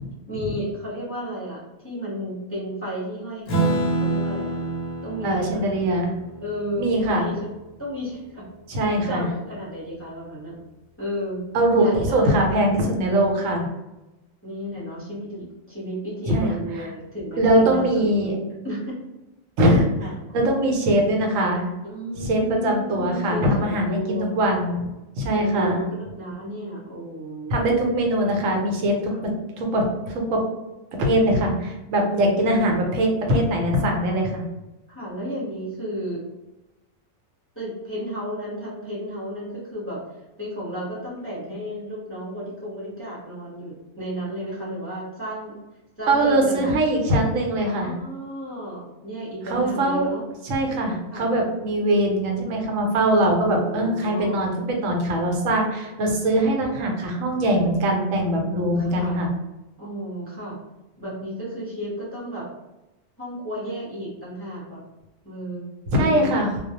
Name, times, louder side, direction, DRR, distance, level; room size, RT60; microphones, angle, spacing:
voice 1, 0.3-4.7 5.0-5.6 6.4-8.4 8.8-10.6 11.0-11.4 11.7-13.2 14.4-18.3 18.6-19.0 19.6-19.7 20.0-20.5 21.8-24.5 25.3-27.6 29.1-29.2 32.0-32.7 34.1-34.2 34.9-36.2 37.5-45.6 46.0-46.8 47.6-50.2 51.1-51.3 53.2-54.4 57.6-59.2 59.8-60.6 61.0-62.5 63.2-64.8 65.2-65.7 66.0-66.3, equal, 15° left, -8 dB, 0.6 m, -33 dB
Acoustic guitar / Strum, 3.5-8.3, right 2 dB, 60° left, 0.7 m, -28 dB
voice 2, 5.2-6.1 6.8-7.3 8.7-9.3 11.5-13.7 16.3-16.5 17.4-18.3 19.6-21.7 22.2-24.9 25.2-25.9 27.5-29.3 29.6-30.4 30.9-34.4 46.1-47.9 49.5-50.1 50.4-59.3 65.9-66.5, right 1 dB, 85° right, 1 dB, 1.0 m, -22 dB
2.3 x 2.0 x 2.7 m, 1.0 s
omnidirectional pair, 1.3 m